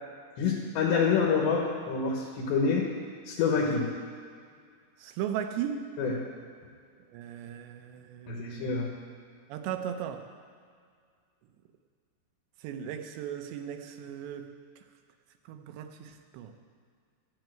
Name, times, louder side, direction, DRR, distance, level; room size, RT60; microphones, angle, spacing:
voice 1, 0.4-2.9 3.3-3.8 6.0-6.1 8.3-8.9, left 5 dB, 85° left, -2 dB, 3.6 m, -27 dB
voice 2, 5.0-5.9 7.1-8.7 9.5-10.3 12.6-14.8 15.5-16.5, right 9 dB, 85° right, 6 dB, 3.2 m, -37 dB
12.5 x 8.7 x 9.1 m, 2.1 s
omnidirectional pair, 4.9 m